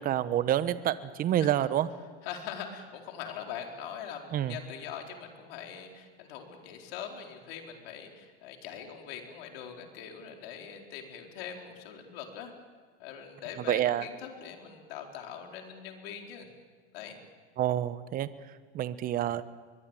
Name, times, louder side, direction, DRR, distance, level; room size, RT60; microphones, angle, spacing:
voice 1, 0.0-1.9 4.3-4.5 13.7-14.0 17.6-18.3 18.7-19.4, right 11 dB, 25° right, 14 dB, 1.0 m, -28 dB
voice 2, 2.2-12.5 13.0-16.5 16.9-17.2, left 8 dB, 60° left, 2 dB, 4.4 m, -42 dB
22.5 x 22.0 x 9.0 m, 1.5 s
supercardioid pair, 135°, 33 cm